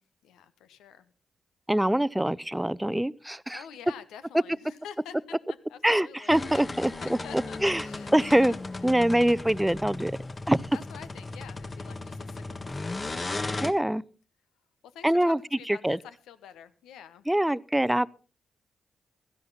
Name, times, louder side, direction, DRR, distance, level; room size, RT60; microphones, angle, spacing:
voice 1, 0.2-1.1 3.5-9.2 10.7-13.9 14.8-17.3, left 9 dB, 80° left, 1.0 m, -48 dB
voice 2, 1.7-3.6 5.8-7.8 8.1-8.5 8.8-10.1 10.5-10.6 13.6-14.0 15.0-15.4 15.8-16.0 17.3-18.1, right 1 dB, 10° right, 0.6 m, -24 dB
sound 1, 6.3-13.7, left 2 dB, 35° left, 1.5 m, -36 dB
16.5 x 13.0 x 4.1 m
hypercardioid pair, 40°, 0 cm